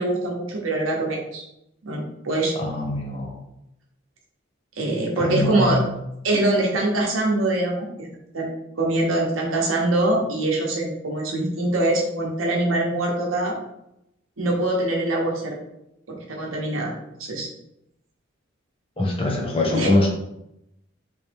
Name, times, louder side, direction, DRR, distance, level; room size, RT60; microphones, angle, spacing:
voice 1, 0.0-1.4 1.8-2.5 4.8-5.8 6.2-8.1 8.3-13.6 14.4-15.6 16.1-16.9 17.2-17.5 19.7-19.9, right 2 dB, 85° right, -1 dB, 0.8 m, -23 dB
voice 2, 2.6-3.3 5.2-5.9 19.0-20.1, left 2 dB, 30° left, 0 dB, 0.8 m, -23 dB
3.2 x 3.0 x 3.3 m, 0.83 s
head